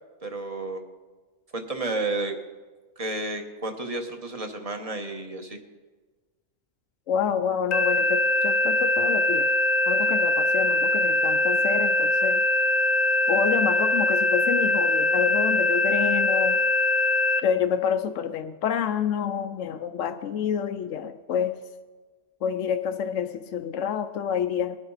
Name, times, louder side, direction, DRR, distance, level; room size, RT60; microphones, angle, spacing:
voice 1, 0.2-0.8 1.5-2.4 3.0-5.6, right 2 dB, 30° right, 4 dB, 1.3 m, -31 dB
voice 2, 7.1-9.5 9.9-12.4 13.3-16.6 17.4-21.6 22.4-24.8, left 8 dB, 70° left, 6 dB, 0.9 m, -28 dB
sound 1, 7.7-17.4, left 2 dB, 40° left, 0.6 m, -22 dB
21.0 x 9.8 x 4.0 m, 1.3 s
omnidirectional pair, 1.4 m